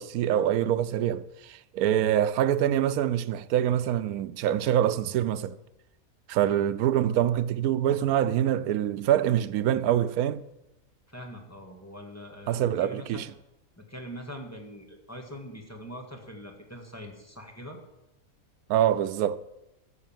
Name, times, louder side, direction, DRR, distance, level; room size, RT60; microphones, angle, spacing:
voice 1, 0.0-5.6 6.3-10.4 12.5-13.3 18.7-19.4, right 11 dB, 90° right, 1.1 m, -25 dB
voice 2, 11.1-13.2 13.8-17.8, equal, 10° left, 1.7 m, -43 dB
13.0 x 6.5 x 7.4 m
omnidirectional pair, 1.5 m